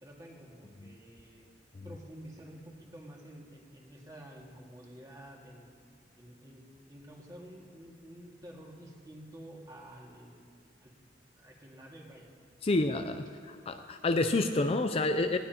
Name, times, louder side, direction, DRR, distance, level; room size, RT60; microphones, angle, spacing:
voice 1, 0.0-1.5 1.8-5.7 6.2-6.6 6.9-10.4 10.8-10.9 11.3-12.3 12.7-12.8, right 1 dB, 20° right, -2 dB, 2.1 m, -50 dB
voice 2, 12.6-15.4, left 2 dB, 35° left, 7 dB, 0.5 m, -29 dB
19.5 x 16.0 x 2.9 m, 2.2 s
head